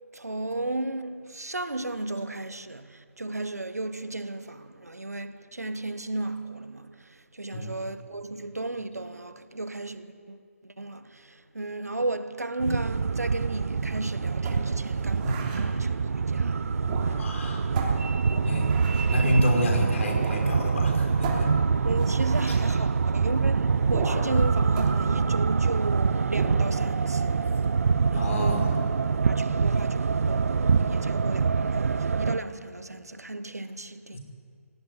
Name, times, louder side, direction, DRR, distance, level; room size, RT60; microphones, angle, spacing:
voice 1, 0.1-16.6 21.8-27.5 28.1-28.7 29.2-30.0 30.3-34.2, right 2 dB, 85° right, 1.3 m, -34 dB
voice 2, 7.5-7.9 15.2-15.4 17.2-17.6 18.4-18.7 19.1-21.5 22.5-22.6 28.1-28.8 34.1-34.2, equal, 60° left, 5.3 m, -29 dB
sound 1, 12.6-32.4, right 5 dB, 65° right, 0.6 m, -25 dB
sound 2, 14.4-15.7 16.8-17.4 17.8-19.2 20.2-20.5 20.7-20.8 21.2-22.7 23.9-24.4 24.8-25.9 26.3-26.7, right 4 dB, 30° right, 3.3 m, -37 dB
17.5 x 16.5 x 9.5 m
figure-of-eight pair, 135°, 8 cm